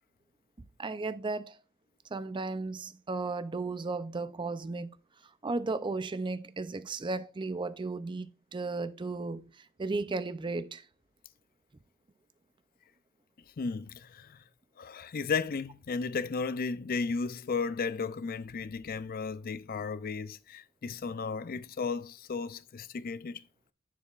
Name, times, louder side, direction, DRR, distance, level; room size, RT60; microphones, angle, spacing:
voice 1, 0.8-1.6 2.1-4.9 5.4-10.8, right 3 dB, 25° right, 0.4 m, -35 dB
voice 2, 13.6-14.4 14.8-23.4, left 4 dB, 45° left, 0.4 m, -34 dB
10.0 x 6.3 x 2.4 m
head